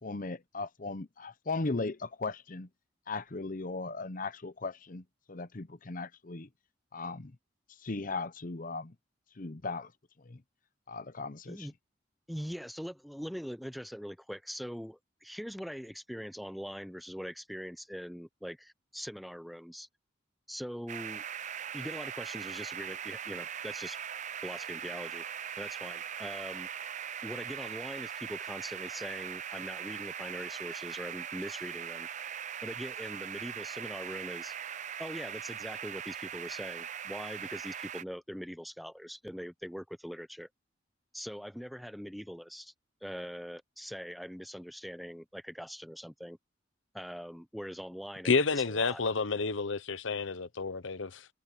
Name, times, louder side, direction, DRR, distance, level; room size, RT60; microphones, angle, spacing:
voice 1, 0.0-2.7 3.1-6.5 6.9-7.3 7.8-8.9 9.4-9.9 10.2-10.4 10.9-11.7, left 3 dB, 45° left, 0.8 m, -37 dB
voice 2, 12.3-19.9 20.5-21.2 21.7-24.0 24.4-25.2 25.6-26.7 27.2-32.1 32.6-34.6 35.0-40.5 41.1-42.7 43.0-46.4 46.9-49.0, equal, ahead, 0.7 m, -42 dB
sound 1, 20.9-38.0, right 8 dB, 40° right, 0.5 m, -40 dB
voice 3, 48.2-51.3, left 4 dB, 80° left, 0.9 m, -30 dB
head